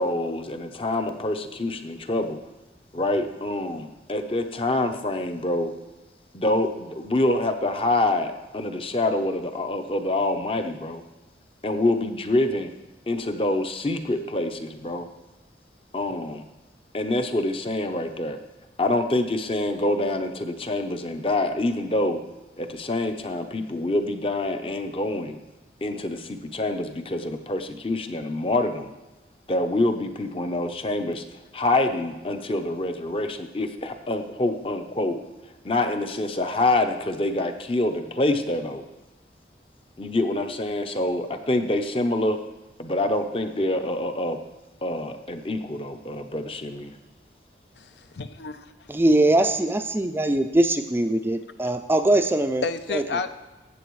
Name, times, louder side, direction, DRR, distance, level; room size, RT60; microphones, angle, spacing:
voice 1, 0.0-2.4 2.9-5.7 6.3-11.0 11.6-12.7 13.1-15.1 15.9-16.4 16.9-18.4 18.8-22.2 22.6-25.4 25.8-28.9 29.5-31.2 31.5-35.2 35.6-38.8 40.0-42.4 42.8-44.4 44.8-46.9, left 2 dB, 30° left, 0.7 m, -26 dB
voice 2, 47.8-48.7 52.6-53.3, left 4 dB, 75° left, 0.5 m, -31 dB
voice 3, 48.9-52.6 52.9-53.0, right 1 dB, 15° right, 0.3 m, -21 dB
15.0 x 7.9 x 3.1 m
head